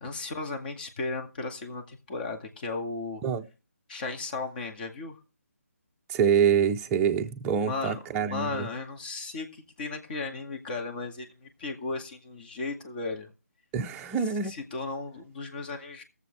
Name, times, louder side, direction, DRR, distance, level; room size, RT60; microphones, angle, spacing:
voice 1, 0.0-3.2 3.9-5.2 7.6-8.0 8.3-13.3 14.4-16.0, left 3 dB, 35° left, 2.1 m, -35 dB
voice 2, 6.1-8.7 13.7-14.5, right 7 dB, 15° right, 0.7 m, -25 dB
19.5 x 7.3 x 3.4 m
figure-of-eight pair, 150°, 9 cm